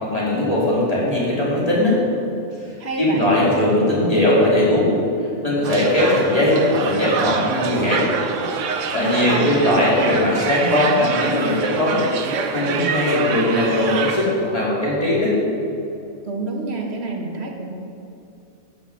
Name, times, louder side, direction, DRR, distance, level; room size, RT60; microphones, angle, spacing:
voice 1, 0.0-2.0 3.0-4.9 5.4-8.0 8.9-12.0 12.5-15.4, left 1 dB, 30° left, -7 dB, 2.8 m, -19 dB
voice 2, 2.8-3.3 9.0-9.8 16.2-17.7, right 3 dB, 60° right, 1 dB, 1.4 m, -28 dB
sound 1, 5.6-14.4, right 6 dB, 90° right, 1.1 m, -26 dB
11.5 x 5.8 x 6.3 m, 2.7 s
omnidirectional pair, 1.2 m